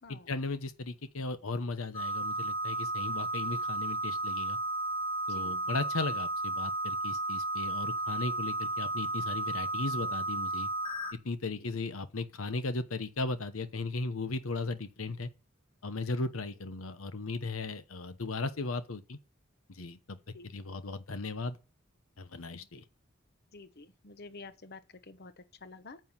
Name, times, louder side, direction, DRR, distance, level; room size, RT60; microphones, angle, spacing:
voice 1, 0.1-4.6 5.3-10.7 11.2-15.3 15.8-19.2 19.7-20.2 20.4-21.6 22.2-22.8, left 3 dB, 85° left, 1.0 m, -36 dB
sound 1, 1.9-11.1, right 2 dB, 25° left, 1.4 m, -33 dB
voice 2, 23.5-26.0, left 3 dB, 50° left, 0.9 m, -50 dB
9.3 x 7.8 x 7.4 m
head